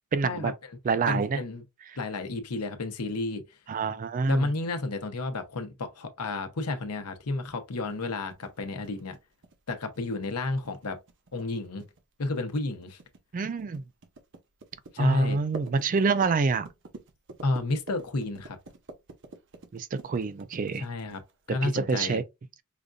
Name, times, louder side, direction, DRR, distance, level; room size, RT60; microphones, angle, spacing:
voice 1, 0.1-0.5 0.8-1.4 1.9-2.0 3.7-4.5 13.3-13.8 15.0-16.7 19.7-20.8 21.6-22.2, right 4 dB, 35° right, 0.3 m, -27 dB
voice 2, 1.1-1.6 2.0-3.4 4.3-9.2 9.7-11.0 11.3-11.8 12.2-13.0 14.9-15.4 17.4-18.6 20.8-21.2 21.5-22.2, left 2 dB, 90° left, 0.8 m, -31 dB
sound 1, 7.7-21.5, right 3 dB, 55° right, 0.7 m, -48 dB
5.0 x 2.5 x 2.3 m
head